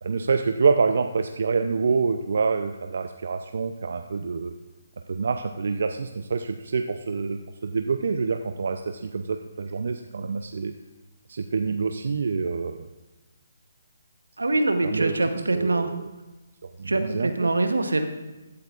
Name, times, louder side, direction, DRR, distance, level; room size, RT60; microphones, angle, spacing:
voice 1, 0.0-4.5 5.1-10.7 11.3-12.9 14.8-15.2 15.5-16.1 16.8-17.5, right 5 dB, 65° right, 6 dB, 0.5 m, -26 dB
voice 2, 14.4-15.9 16.9-18.1, right 2 dB, 90° right, 7 dB, 1.0 m, -24 dB
15.5 x 8.3 x 2.5 m, 1.1 s
figure-of-eight pair, 145°, 0 cm